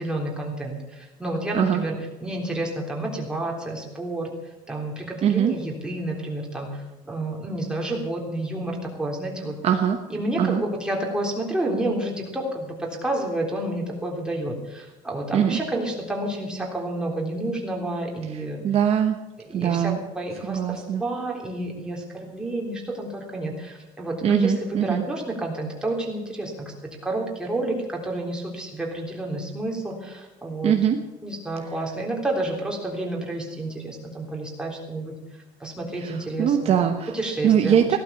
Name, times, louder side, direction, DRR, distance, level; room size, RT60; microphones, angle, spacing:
voice 1, 0.0-4.3 4.7-9.6 10.1-18.6 19.5-30.7 31.2-35.2 35.6-36.8 37.1-38.0, right 1 dB, 5° right, -1 dB, 3.6 m, -30 dB
voice 2, 5.2-5.5 9.6-10.0 10.4-10.6 15.3-15.6 18.3-19.2 19.5-20.0 20.5-21.0 24.2-25.0 30.6-31.0 36.0-37.2 37.4-38.0, right 9 dB, 45° right, 5 dB, 1.1 m, -22 dB
16.5 x 12.0 x 6.9 m, 1.1 s
cardioid pair, 145°, 15 cm